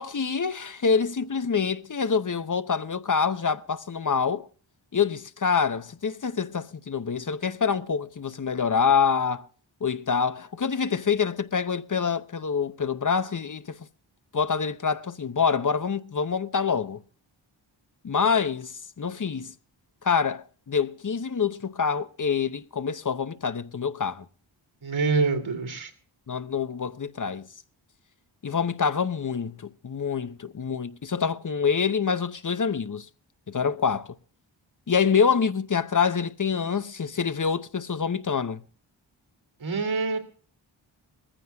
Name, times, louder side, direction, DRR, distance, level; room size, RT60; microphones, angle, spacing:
voice 1, 0.0-4.5 4.9-9.5 9.8-13.8 14.3-17.0 18.0-19.5 20.0-24.2 26.3-27.5 28.4-33.1 33.5-34.1 34.9-38.6, left 6 dB, 40° left, 0.7 m, -26 dB
voice 2, 24.8-25.9 39.6-40.2, right 4 dB, 85° right, 2.8 m, -25 dB
22.0 x 15.0 x 2.3 m
wide cardioid pair, 90°, 46 cm